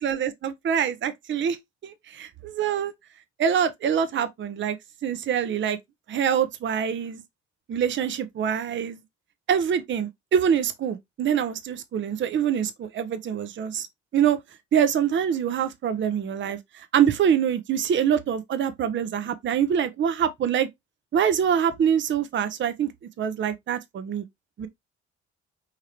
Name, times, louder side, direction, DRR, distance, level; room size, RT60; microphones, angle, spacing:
voice 1, 0.0-1.6 1.8-2.9 3.4-4.8 5.0-5.8 6.1-7.2 7.7-9.0 9.5-13.9 14.1-14.4 14.7-20.7 21.1-22.9 23.2-24.3 24.6-24.7, right 8 dB, 35° right, 0.6 m, -25 dB
4.7 x 3.2 x 2.9 m
figure-of-eight pair, 40°, 33 cm